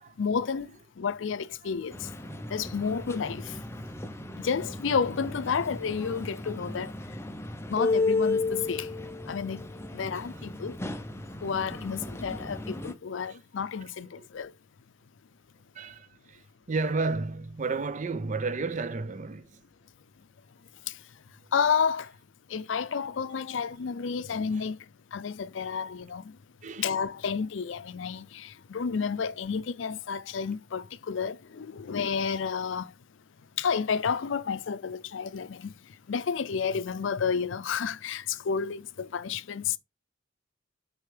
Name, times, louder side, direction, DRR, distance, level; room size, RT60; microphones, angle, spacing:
voice 1, 0.2-2.1 2.5-3.6 4.4-6.9 7.7-9.0 9.3-9.6 9.9-10.8 11.4-14.5 20.9-21.0 21.5-22.1 22.5-24.8 25.1-26.4 26.8-32.9 33.6-35.7 36.1-39.8, left 6 dB, 75° left, 0.5 m, -31 dB
sound 1, 1.9-12.9, left 3 dB, 15° left, 0.6 m, -34 dB
voice 2, 13.8-14.3 15.7-19.6 24.5-24.6 25.6-25.7 26.6-26.9, right 3 dB, 40° right, 0.6 m, -33 dB
8.0 x 4.6 x 3.2 m
head